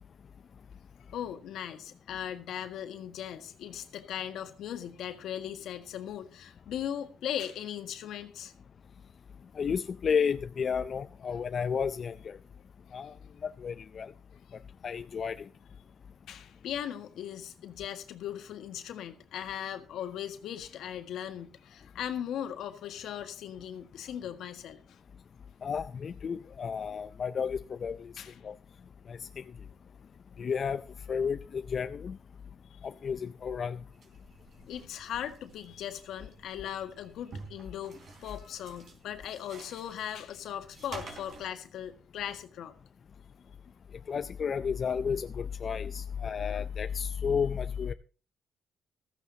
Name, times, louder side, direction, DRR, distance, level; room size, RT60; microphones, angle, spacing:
voice 1, 1.1-8.5 16.3-25.0 28.2-28.4 34.7-42.7, left 10 dB, 80° left, 1.6 m, -38 dB
voice 2, 9.6-12.4 12.9-13.2 13.4-14.1 14.8-15.5 25.6-28.1 28.4-28.5 29.1-29.4 30.4-30.8 31.1-32.2 32.8-33.8 44.1-47.9, left 6 dB, 50° left, 0.5 m, -32 dB
sound 1, 33.9-41.5, right 4 dB, 60° right, 3.8 m, -50 dB
15.5 x 14.0 x 2.8 m
cardioid pair, 90°, 0 cm